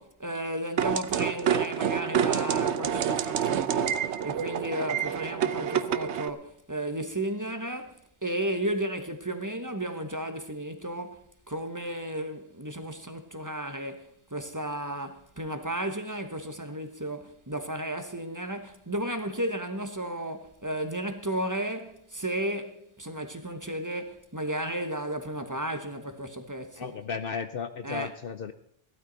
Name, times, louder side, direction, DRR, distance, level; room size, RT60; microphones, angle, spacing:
voice 1, 0.0-26.9 27.8-28.1, right 1 dB, 15° right, 1.1 m, -34 dB
sound 1, 0.8-6.3, right 9 dB, 85° right, 1.0 m, -27 dB
voice 2, 26.8-28.5, left 6 dB, 60° left, 0.9 m, -34 dB
15.5 x 12.5 x 4.0 m
omnidirectional pair, 1.1 m